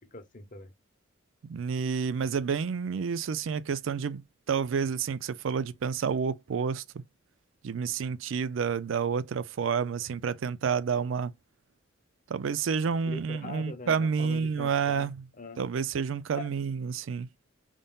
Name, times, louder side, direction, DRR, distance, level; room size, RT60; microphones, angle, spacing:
voice 1, 0.1-0.7 13.1-15.6 16.3-16.5, left 3 dB, 40° left, 0.9 m, -42 dB
voice 2, 1.4-4.2 4.5-6.8 7.6-11.3 12.3-15.2 15.6-17.3, right 6 dB, 75° right, 0.4 m, -29 dB
5.2 x 3.7 x 2.3 m
head